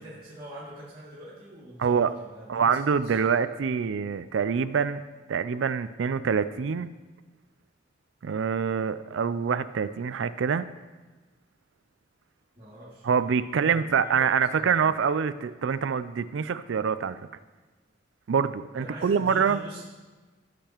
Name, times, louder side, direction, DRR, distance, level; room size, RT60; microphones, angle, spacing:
voice 1, 0.0-2.8 3.0-3.2 12.6-13.0 13.3-14.2 14.5-14.9 18.7-19.8, right 1 dB, 25° right, -10 dB, 2.4 m, -43 dB
voice 2, 1.8-2.1 2.5-5.0 5.3-6.9 8.2-10.7 13.0-17.2 18.3-19.6, right 6 dB, 80° right, 13 dB, 0.4 m, -25 dB
17.0 x 6.7 x 3.0 m, 1.3 s
head